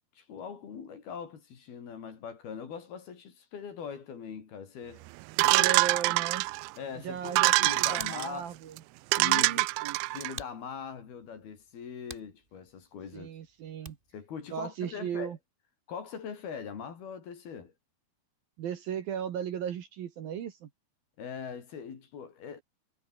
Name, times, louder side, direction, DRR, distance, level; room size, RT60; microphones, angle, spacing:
voice 1, 0.1-5.1 5.4-5.7 6.0-6.2 6.8-8.5 9.2-9.7 10.1-13.3 14.1-15.4 15.9-17.7 21.2-22.6, left 6 dB, 55° left, 5.2 m, -41 dB
sound 1, 5.4-6.7 7.3-8.3 8.8-8.9 9.1-10.3, right 24 dB, 90° right, 2.4 m, -25 dB
voice 2, 5.5-6.5 7.0-8.8 9.2-10.0 13.1-14.0 14.5-15.4 18.6-20.7, right 9 dB, 60° right, 3.1 m, -36 dB
Hands, 7.4-14.3, right 1 dB, 10° right, 4.5 m, -51 dB
omnidirectional pair, 5.4 m